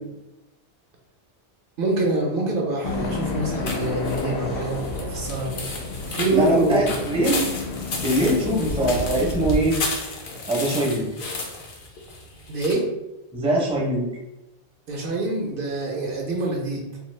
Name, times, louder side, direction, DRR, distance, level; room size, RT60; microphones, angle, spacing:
voice 1, 1.8-6.8 8.6-8.7 12.5-12.8 14.9-16.8, right 2 dB, 65° right, 0 dB, 0.8 m, -26 dB
sound 1, 2.8-9.7, left 3 dB, 90° left, 0.9 m, -30 dB
sound 2, 3.7-12.7, left 3 dB, 65° left, 0.8 m, -33 dB
voice 2, 6.3-7.4 8.0-9.8 10.5-11.0 13.3-14.1, right 1 dB, 5° right, -4 dB, 0.5 m, -22 dB
2.7 x 2.3 x 3.1 m, 0.96 s
omnidirectional pair, 1.0 m